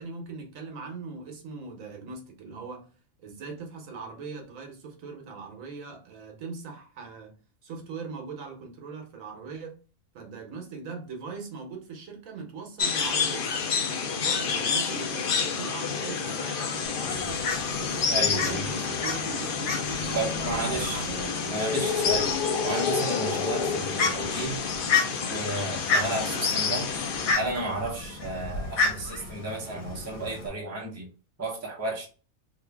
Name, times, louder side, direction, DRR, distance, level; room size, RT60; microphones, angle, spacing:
voice 1, 0.0-2.9 3.2-7.3 7.6-9.7 10.1-13.6 14.0-17.4 17.8-21.8, right 4 dB, 75° right, 1.2 m, -40 dB
sound 1, 12.8-27.3, left 5 dB, 60° left, 0.5 m, -29 dB
Fowl, 16.8-30.5, left 4 dB, 85° left, 1.2 m, -32 dB
voice 2, 18.1-18.6 20.1-21.1 21.5-22.3 22.6-24.6 25.3-26.9 27.4-31.1 31.4-32.1, right 2 dB, 15° right, 0.7 m, -32 dB
2.8 x 2.5 x 3.3 m
omnidirectional pair, 1.4 m